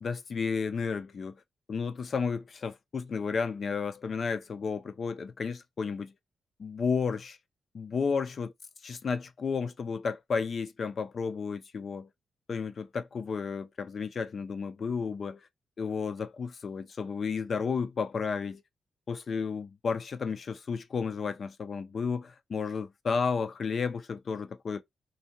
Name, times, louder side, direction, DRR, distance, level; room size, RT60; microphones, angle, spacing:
voice 1, 0.0-1.4 1.7-6.1 6.6-7.4 7.7-8.5 8.8-12.1 12.5-15.5 15.8-18.6 19.1-24.8, left 5 dB, 40° left, 0.3 m, -32 dB
2.7 x 2.1 x 2.8 m
wide cardioid pair, 170°, 0 cm